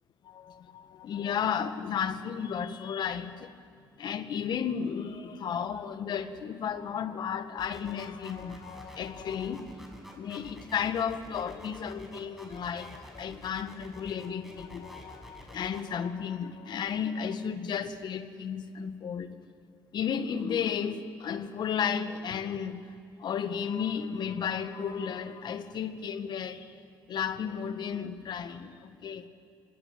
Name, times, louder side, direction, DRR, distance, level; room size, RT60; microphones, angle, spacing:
voice 1, 0.2-3.5 4.0-9.7 10.2-19.4 19.9-22.8 23.2-26.7 27.1-29.3, left 7 dB, 65° left, 10 dB, 1.7 m, -33 dB
sound 1, 7.6-15.8, equal, ahead, 6.5 m, -48 dB
25.5 x 19.5 x 9.3 m, 2.3 s
supercardioid pair, 70°, 8 cm